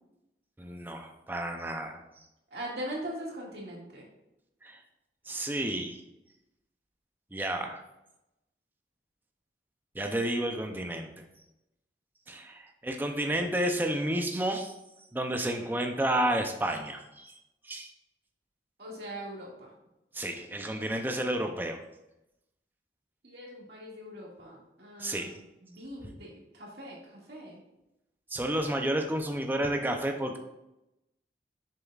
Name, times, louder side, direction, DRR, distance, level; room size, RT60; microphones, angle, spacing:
voice 1, 0.6-2.0 4.6-4.8 5.3-6.0 7.3-7.8 9.9-11.2 12.3-14.7 15.1-17.4 17.6-17.9 20.1-21.8 25.0-25.4 28.3-30.4, right 1 dB, 10° right, 4 dB, 0.5 m, -31 dB
voice 2, 2.5-4.0 18.8-19.7 23.2-25.3 25.6-27.6, equal, 65° right, -3 dB, 2.0 m, -41 dB
7.1 x 6.8 x 2.4 m, 0.91 s
head